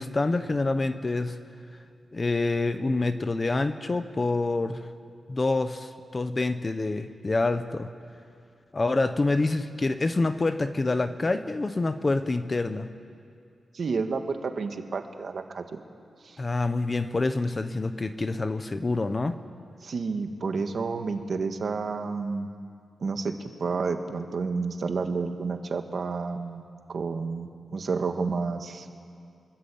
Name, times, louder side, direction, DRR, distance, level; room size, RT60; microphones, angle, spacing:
voice 1, 0.0-1.4 2.1-4.9 5.3-7.9 8.7-12.9 16.4-19.4, left 3 dB, 20° left, 10 dB, 0.8 m, -27 dB
voice 2, 13.7-15.8 16.2-16.4 19.8-22.5 23.0-26.6 26.9-28.9, right 4 dB, 45° right, 6 dB, 1.7 m, -30 dB
25.5 x 23.0 x 8.6 m, 2.4 s
wide cardioid pair, 175°, 0 cm